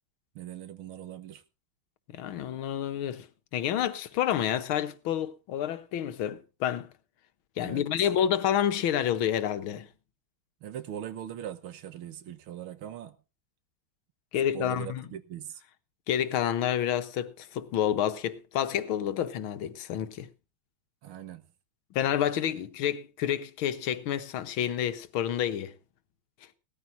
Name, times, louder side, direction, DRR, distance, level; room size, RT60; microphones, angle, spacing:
voice 1, 0.4-1.4 7.6-8.1 10.6-13.2 14.5-15.6 21.0-21.4, right 10 dB, 90° right, 2.0 m, -40 dB
voice 2, 2.1-3.3 3.5-6.9 7.6-9.9 14.3-15.1 16.1-20.3 21.9-25.7, left 10 dB, 80° left, 1.8 m, -29 dB
18.0 x 13.5 x 2.6 m
omnidirectional pair, 2.3 m